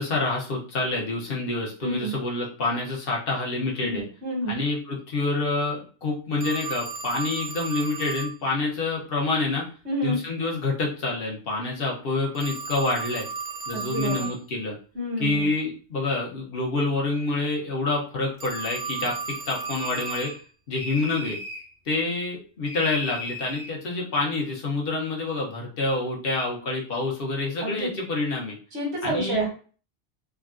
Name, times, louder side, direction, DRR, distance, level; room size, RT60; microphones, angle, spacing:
voice 1, 0.0-4.0 4.5-9.7 10.0-13.3 13.7-14.8 15.2-20.3 20.7-21.4 21.8-28.6 29.0-29.5, left 3 dB, 60° left, -2 dB, 1.1 m, -27 dB
voice 2, 1.8-2.1 3.8-4.6 9.8-10.2 13.7-14.3 14.9-15.5 27.6-27.9 28.7-29.5, right 1 dB, 85° right, -2 dB, 1.5 m, -28 dB
Telephone, 6.4-8.4 12.3-14.4 18.4-20.4, right 5 dB, 55° right, 0.5 m, -34 dB
sound 1, 19.6-20.4 20.7-21.7 22.7-23.7, left 1 dB, 80° left, 1.2 m, -37 dB
3.6 x 2.3 x 2.5 m, 0.39 s
omnidirectional pair, 1.1 m